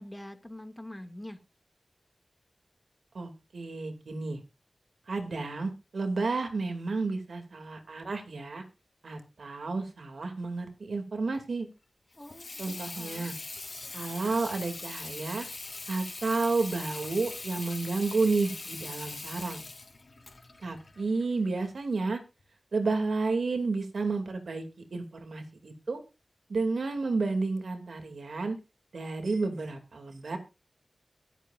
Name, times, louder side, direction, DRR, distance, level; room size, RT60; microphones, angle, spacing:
voice 1, 0.0-1.4 12.2-13.4, left 1 dB, 20° left, 2.2 m, -45 dB
voice 2, 3.1-4.4 5.1-8.6 9.0-11.7 12.6-13.3 13.9-15.5 15.9-19.6 20.6-22.2 22.7-24.6 24.9-26.0 26.5-28.6 28.9-30.4, right 3 dB, 85° right, 2.6 m, -31 dB
Water tap faucet / Sink (filling or washing), 12.1-21.7, left 3 dB, 60° left, 3.1 m, -42 dB
23.0 x 8.4 x 2.5 m
wide cardioid pair, 65°, 0 cm